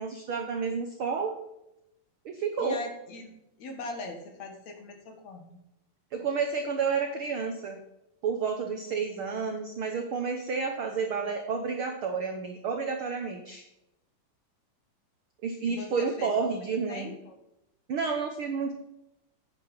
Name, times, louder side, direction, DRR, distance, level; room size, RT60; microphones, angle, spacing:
voice 1, 0.0-1.4 2.2-2.8 6.1-7.8 8.2-13.6 15.4-17.1 17.9-18.7, right 5 dB, 75° right, 4 dB, 1.2 m, -30 dB
voice 2, 2.6-3.3 3.6-5.6 15.6-16.5 16.9-17.3, left 2 dB, 60° left, 4 dB, 2.7 m, -41 dB
9.8 x 7.3 x 5.6 m, 0.87 s
omnidirectional pair, 3.9 m